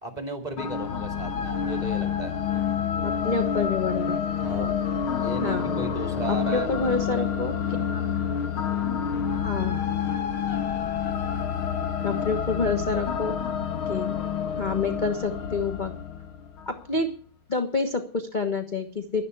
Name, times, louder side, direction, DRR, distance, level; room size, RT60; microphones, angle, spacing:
voice 1, 0.0-2.4 4.4-4.8 5.1-6.7, right 2 dB, 20° right, 6 dB, 2.3 m, -35 dB
sound 1, 0.6-16.8, left 8 dB, 75° left, 2.2 m, -28 dB
voice 2, 3.0-4.2 4.5-4.7 5.4-5.8 6.3-8.1 9.4-9.8 12.0-13.4 13.9-14.1 14.6-15.9 16.7-17.1 17.5-19.2, left 4 dB, 25° left, 5 dB, 1.2 m, -28 dB
11.5 x 11.5 x 8.0 m, 0.42 s
omnidirectional pair, 2.4 m